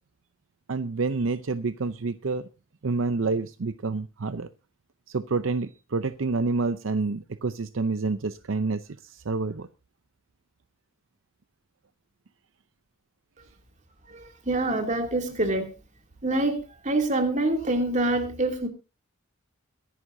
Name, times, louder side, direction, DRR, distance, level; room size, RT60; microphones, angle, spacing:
voice 1, 0.7-2.5 2.8-4.5 5.1-9.7, right 3 dB, 65° right, 12 dB, 0.6 m, -28 dB
voice 2, 14.0-15.7 16.2-18.7, right 2 dB, 35° right, 4 dB, 2.7 m, -26 dB
22.5 x 11.0 x 2.7 m, 0.30 s
head